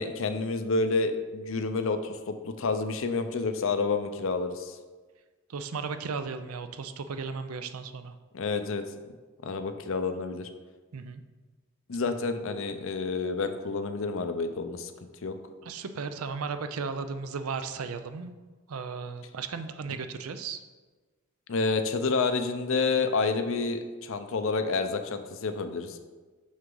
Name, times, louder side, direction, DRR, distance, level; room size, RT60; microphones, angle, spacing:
voice 1, 0.0-4.8 8.3-8.8 9.4-10.5 11.9-14.9 15.2-15.3 21.5-26.0, left 4 dB, 65° left, 9 dB, 0.6 m, -29 dB
voice 2, 5.5-8.1 10.9-11.2 15.6-18.3 18.7-20.6, right 5 dB, 85° right, 10 dB, 0.5 m, -35 dB
6.3 x 5.9 x 3.8 m, 1.3 s
head